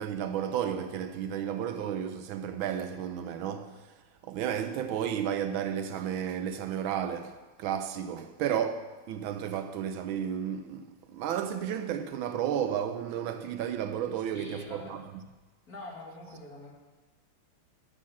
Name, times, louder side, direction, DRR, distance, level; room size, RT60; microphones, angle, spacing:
voice 1, 0.0-3.9 4.2-15.0, right 9 dB, 75° right, 1.3 m, -33 dB
voice 2, 14.3-14.9 15.7-16.7, left 2 dB, 45° left, 2.2 m, -44 dB
12.0 x 6.2 x 7.1 m
omnidirectional pair, 2.3 m